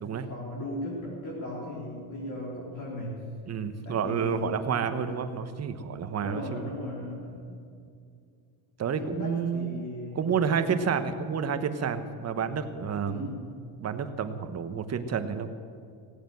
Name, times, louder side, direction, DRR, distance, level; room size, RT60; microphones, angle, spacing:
voice 1, 0.3-3.3 3.8-5.2 6.2-7.7 9.0-10.4 13.0-13.5, left 1 dB, 40° left, -5 dB, 3.9 m, -37 dB
voice 2, 3.5-6.7 8.8-9.9 10.1-13.3 13.8-15.5, right 6 dB, 35° right, 9 dB, 1.2 m, -30 dB
17.0 x 8.8 x 7.7 m, 2.4 s
supercardioid pair, 100°, 44 cm